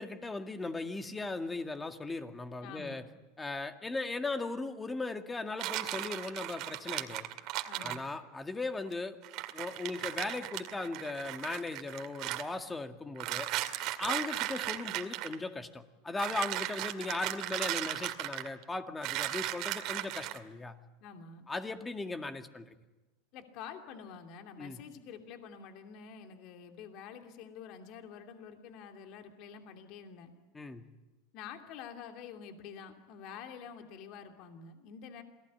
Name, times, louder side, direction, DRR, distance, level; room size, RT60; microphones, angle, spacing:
voice 1, 0.0-3.0 3.4-7.3 7.8-9.2 9.5-13.5 14.0-20.8 21.5-22.7 24.6-24.8 30.5-30.9, left 3 dB, 15° left, 7 dB, 2.1 m, -38 dB
voice 2, 2.6-3.0 7.7-8.0 21.0-21.5 23.3-30.3 31.3-35.2, left 7 dB, 55° left, 5 dB, 2.9 m, -48 dB
sound 1, 5.6-8.0 8.9-9.0 9.2-12.4 13.2-15.4 16.2-18.6 19.0-20.4, right 15 dB, 55° right, 2.2 m, -36 dB
28.0 x 19.0 x 9.9 m, 1.1 s
hypercardioid pair, 105°, 0 cm